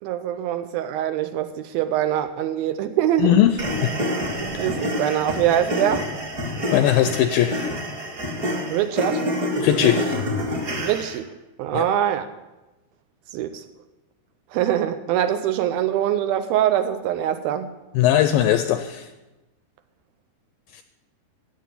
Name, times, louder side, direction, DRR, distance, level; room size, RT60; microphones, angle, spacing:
voice 1, 0.0-3.4 4.4-6.1 8.7-9.3 10.8-11.3 11.6-12.3 13.3-13.6 14.5-17.7, right 11 dB, 80° right, 10 dB, 2.3 m, -23 dB
voice 2, 3.2-3.9 4.5-4.6 6.7-7.7 9.6-10.2 11.7-11.8 18.0-19.1 20.8-20.9, left 11 dB, 80° left, 9 dB, 2.1 m, -20 dB
sound 1, 3.6-11.2, left 1 dB, 35° right, 1.5 m, -27 dB
13.0 x 8.7 x 8.3 m, 1.1 s
omnidirectional pair, 4.6 m